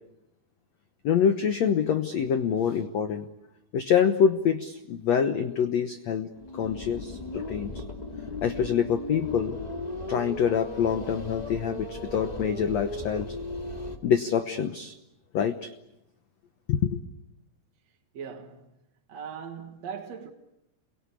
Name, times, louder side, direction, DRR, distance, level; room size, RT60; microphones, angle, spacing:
voice 1, 1.0-3.3 3.7-6.3 6.5-7.8 8.4-9.6 10.1-13.3 14.0-14.9 15.3-15.7 16.7-17.0, left 7 dB, 75° left, 1.5 m, -26 dB
sound 1, 6.3-14.0, left 1 dB, 15° left, 1.5 m, -37 dB
voice 2, 18.1-18.8 19.1-20.3, right 7 dB, 55° right, 2.1 m, -40 dB
30.0 x 23.0 x 8.4 m
omnidirectional pair, 4.7 m